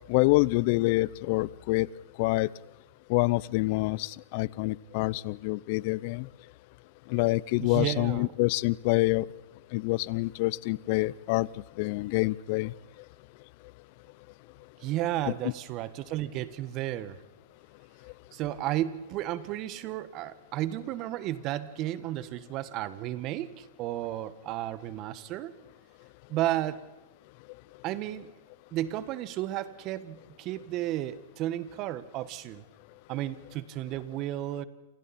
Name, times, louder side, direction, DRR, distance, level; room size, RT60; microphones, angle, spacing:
voice 1, 0.1-1.9 2.2-2.5 3.1-6.3 7.1-9.3 9.7-11.5 11.8-12.7 15.4-15.5, left 22 dB, 50° left, 23 dB, 0.7 m, -26 dB
voice 2, 7.6-8.3 14.8-17.2 18.3-25.5 26.3-26.9 27.8-28.3 28.7-32.6 33.1-34.6, right 14 dB, 40° right, 15 dB, 1.5 m, -33 dB
28.5 x 27.5 x 4.4 m, 1.1 s
hypercardioid pair, 125°, 0 cm